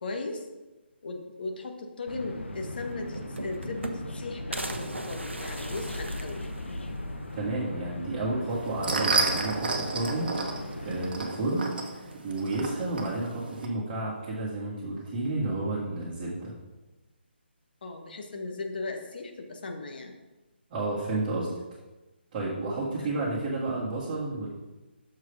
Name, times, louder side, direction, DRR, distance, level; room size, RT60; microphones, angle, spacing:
voice 1, 0.0-0.5 1.0-6.4 17.8-20.1 23.0-23.1, left 3 dB, 55° left, 4 dB, 1.1 m, -37 dB
sound 1, 2.1-11.1, left 1 dB, 80° left, 0.9 m, -38 dB
sound 2, 2.5-2.6 2.9-4.2 4.5-7.1 7.5-7.6 7.9-8.0 9.1-9.6 10.0-10.7 11.8-12.3, right 2 dB, 85° right, 0.8 m, -39 dB
voice 2, 7.3-10.3 10.8-11.6 12.2-16.5 20.7-21.5 22.3-24.5, right 2 dB, 25° right, -7 dB, 1.6 m, -31 dB
sound 3, 8.5-13.7, right 3 dB, 55° right, 1.1 m, -31 dB
6.5 x 4.8 x 5.3 m, 1.1 s
figure-of-eight pair, 145°, 6 cm